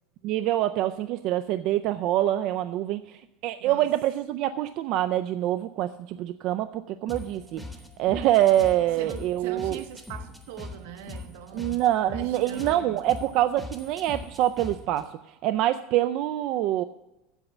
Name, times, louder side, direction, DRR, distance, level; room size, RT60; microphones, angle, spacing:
voice 1, 0.2-7.6 8.0-9.8 11.5-16.8, right 13 dB, 45° right, 10 dB, 0.3 m, -25 dB
voice 2, 3.6-3.9 9.0-13.0, right 10 dB, 70° right, 9 dB, 1.0 m, -42 dB
sound 1, 7.1-15.1, left 2 dB, ahead, 0.9 m, -41 dB
8.1 x 7.1 x 8.3 m, 0.99 s
cardioid pair, 175°, 0 cm